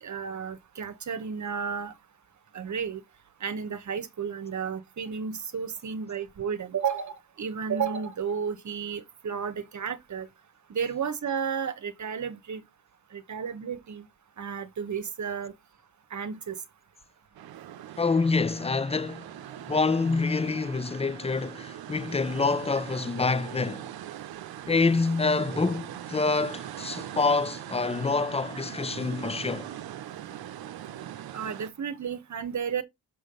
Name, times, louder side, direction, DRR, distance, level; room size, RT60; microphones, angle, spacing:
voice 1, 0.0-1.9 2.5-3.0 3.4-10.3 10.7-12.6 13.1-14.1 14.4-15.5 16.1-16.6 31.3-32.8, right 6 dB, 50° right, 1.1 m, -32 dB
sound 1, 17.3-31.7, right 11 dB, 75° right, 0.8 m, -41 dB
voice 2, 18.0-19.3 19.7-23.9 24.7-29.7, left 4 dB, 15° left, 0.5 m, -26 dB
6.3 x 5.1 x 3.8 m
cardioid pair, 65°, 37 cm